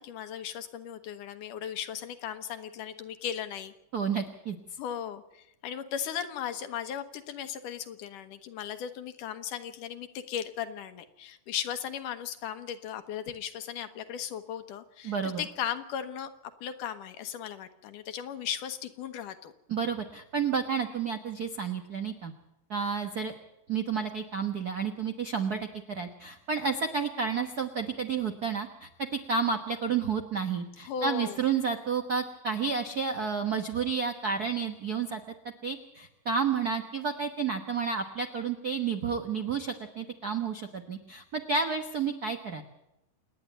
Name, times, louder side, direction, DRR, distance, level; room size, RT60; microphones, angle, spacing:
voice 1, 0.0-3.7 4.8-19.5 30.8-31.4, left 9 dB, 75° left, 9 dB, 2.7 m, -37 dB
voice 2, 3.9-4.6 15.0-15.4 19.7-22.3 22.7-23.3 23.7-28.9 29.3-35.2 35.6-42.6, right 5 dB, 70° right, 6 dB, 0.9 m, -31 dB
27.5 x 10.0 x 9.2 m, 0.86 s
omnidirectional pair, 3.8 m